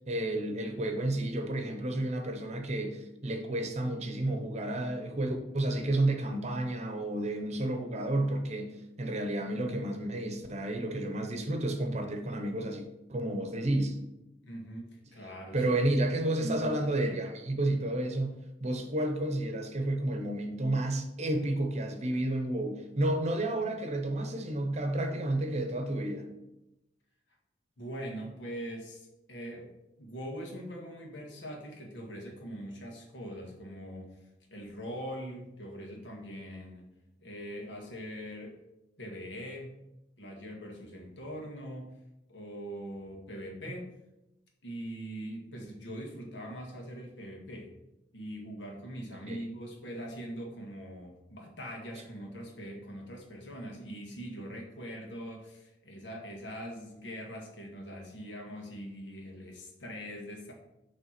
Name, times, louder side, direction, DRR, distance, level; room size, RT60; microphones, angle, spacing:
voice 1, 0.1-14.0 15.5-26.3 49.3-49.4, right 1 dB, 40° right, 5 dB, 0.8 m, -31 dB
voice 2, 14.4-15.7 27.8-29.7 30.0-36.9 37.2-38.6 39.0-39.8 40.2-41.9 42.3-43.9 44.6-47.7 48.1-60.5, equal, 85° left, 0 dB, 1.7 m, -42 dB
6.8 x 3.4 x 5.9 m, 0.92 s
head